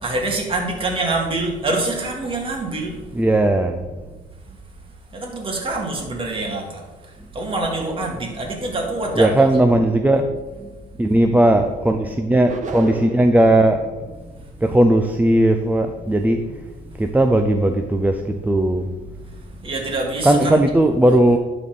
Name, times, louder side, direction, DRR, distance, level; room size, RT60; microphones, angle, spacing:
voice 1, 0.0-3.0 5.1-6.8 7.3-9.5 19.6-20.6, right 2 dB, 30° right, 0 dB, 2.2 m, -25 dB
voice 2, 3.1-3.8 9.2-10.3 10.6-13.8 14.6-16.4 17.0-18.9 20.2-21.4, right 1 dB, 10° right, 5 dB, 0.5 m, -17 dB
sound 1, 12.4-13.4, right 3 dB, 45° right, 1.2 m, -30 dB
11.5 x 4.2 x 5.3 m, 1.2 s
cardioid pair, 110°, 17 cm